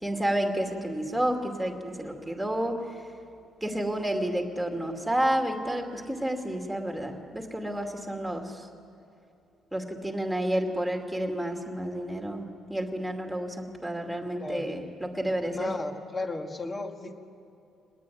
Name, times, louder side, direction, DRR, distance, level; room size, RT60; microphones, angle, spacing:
voice 1, 0.0-2.8 3.6-8.7 9.7-12.4 12.7-15.7, right 1 dB, 5° right, 3 dB, 2.5 m, -30 dB
voice 2, 14.4-14.7 15.5-17.1, left 2 dB, 25° left, 5 dB, 2.0 m, -34 dB
25.5 x 20.0 x 9.3 m, 2.8 s
cardioid pair, 135°, 0 cm